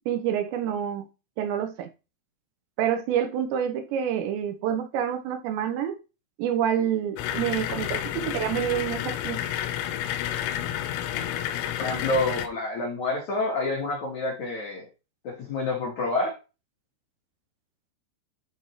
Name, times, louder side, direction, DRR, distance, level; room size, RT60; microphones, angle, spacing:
voice 1, 0.1-1.0 1.4-1.9 2.8-6.0 6.4-9.4, right 9 dB, 80° right, 3.1 m, -27 dB
sound 1, 7.2-12.5, left 11 dB, 90° left, 3.3 m, -30 dB
voice 2, 11.8-14.9 15.2-16.4, left 2 dB, 60° left, 2.1 m, -28 dB
12.5 x 4.3 x 3.1 m
omnidirectional pair, 5.4 m